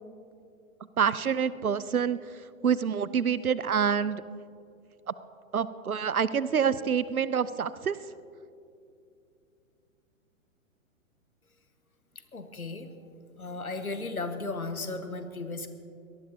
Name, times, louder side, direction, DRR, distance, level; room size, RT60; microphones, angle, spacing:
voice 1, 1.0-4.2 5.5-8.0, right 7 dB, 80° right, 16 dB, 0.7 m, -27 dB
voice 2, 12.3-12.9 13.4-15.7, left 3 dB, 85° left, 8 dB, 1.5 m, -35 dB
23.5 x 18.5 x 2.8 m, 2.5 s
figure-of-eight pair, 110°, 42 cm